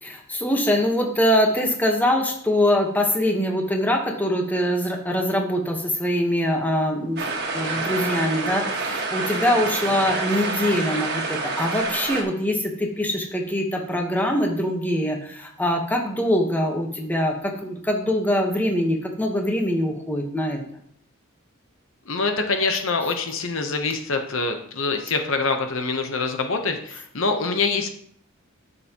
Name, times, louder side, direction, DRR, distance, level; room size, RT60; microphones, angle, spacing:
voice 1, 0.0-7.3 7.5-20.6, left 1 dB, 10° left, 2 dB, 1.1 m, -23 dB
sound 1, 7.2-12.2, right 3 dB, 50° right, 1.6 m, -27 dB
voice 2, 22.1-27.9, left 4 dB, 65° left, 5 dB, 0.9 m, -25 dB
10.5 x 6.7 x 3.0 m, 0.64 s
head